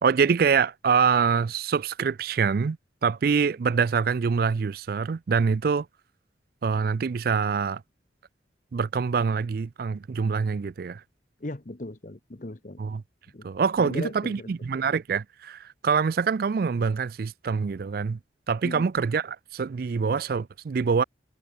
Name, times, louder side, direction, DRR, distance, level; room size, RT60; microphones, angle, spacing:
voice 1, 0.0-2.8 3.0-5.9 6.6-7.8 8.7-11.0 12.8-13.0 13.4-18.2 18.5-21.0, right 5 dB, 50° right, 0.4 m, -25 dB
voice 2, 11.4-12.8 13.3-13.4 13.8-14.5 18.6-18.9, left 1 dB, 45° left, 1.1 m, -37 dB
head